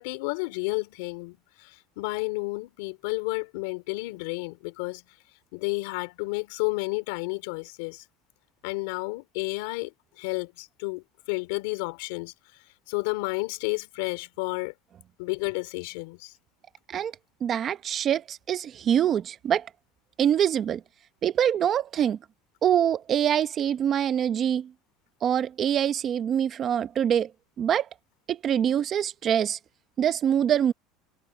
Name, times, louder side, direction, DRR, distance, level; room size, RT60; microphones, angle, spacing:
voice 1, 0.0-5.0 5.5-8.0 8.6-14.7 15.2-16.3, left 26 dB, 80° left, 3.1 m, -31 dB
voice 2, 17.4-19.7 20.2-20.8 21.2-22.2 22.6-24.7 25.2-27.3 27.6-27.9 28.3-29.6 30.0-30.7, right 9 dB, 30° right, 0.9 m, -24 dB
cardioid pair, 155°, 0 cm